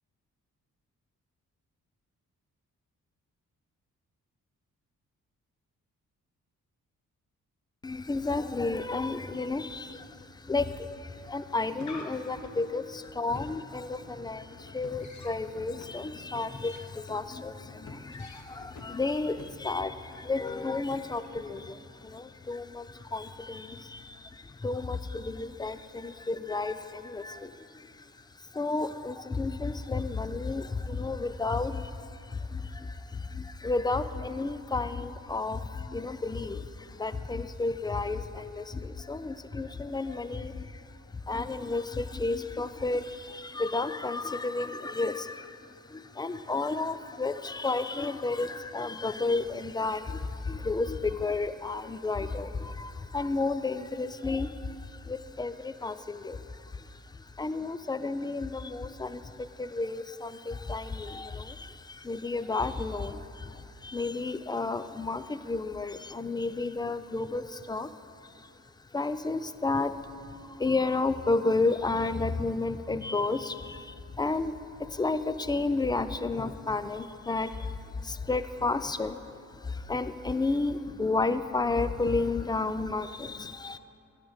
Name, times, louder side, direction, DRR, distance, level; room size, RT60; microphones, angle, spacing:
voice 1, 7.8-28.0 28.5-40.8 41.3-67.9 68.4-68.5 68.9-79.4 79.6-83.8, left 3 dB, 15° left, 12 dB, 0.4 m, -32 dB
sound 1, 11.4-21.4, left 3 dB, 60° left, 1.1 m, -49 dB
10.0 x 4.9 x 6.5 m, 2.4 s
supercardioid pair, 50°, 33 cm